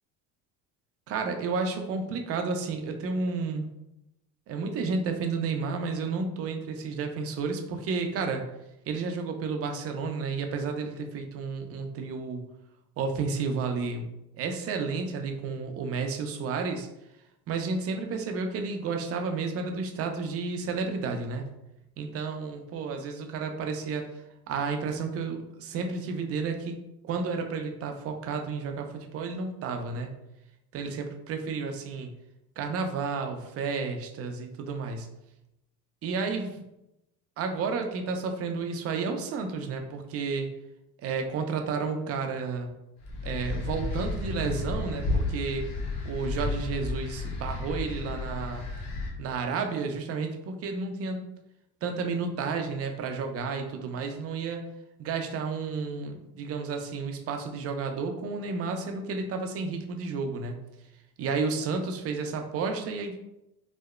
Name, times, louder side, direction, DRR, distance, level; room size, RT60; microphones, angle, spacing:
voice 1, 1.1-3.6 4.5-8.4 8.9-12.5 13.0-14.1 14.4-16.9 17.5-21.4 22.0-24.1 24.5-26.8 27.0-30.1 30.7-32.1 32.6-35.1 36.0-36.7 37.4-40.5 41.0-42.7 43.2-45.7 46.0-48.7 49.2-51.3 51.8-54.7 55.0-60.6 61.2-63.2, right 4 dB, 35° right, 5 dB, 0.4 m, -31 dB
sound 1, 43.0-49.1, left 2 dB, 65° left, 0.8 m, -32 dB
2.9 x 2.0 x 2.3 m, 0.88 s
supercardioid pair, 90°, 44 cm